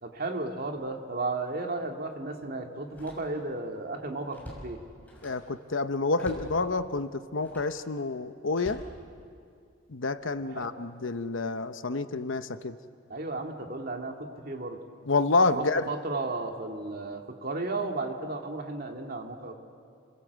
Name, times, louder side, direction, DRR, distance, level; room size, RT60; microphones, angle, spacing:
voice 1, 0.0-4.8 10.5-10.7 13.1-14.8 15.5-19.5, right 2 dB, 50° right, 3 dB, 2.2 m, -34 dB
Slam, 0.7-0.9 1.4-1.5 2.8-3.6 4.0-5.5 6.2-6.6 7.3-7.8 8.5-9.6 10.2-10.5, equal, 10° left, 6.1 m, -47 dB
voice 2, 5.2-8.8 9.9-12.7 15.1-15.8, left 3 dB, 75° left, 10 dB, 1.0 m, -28 dB
29.5 x 21.5 x 8.2 m, 2.3 s
head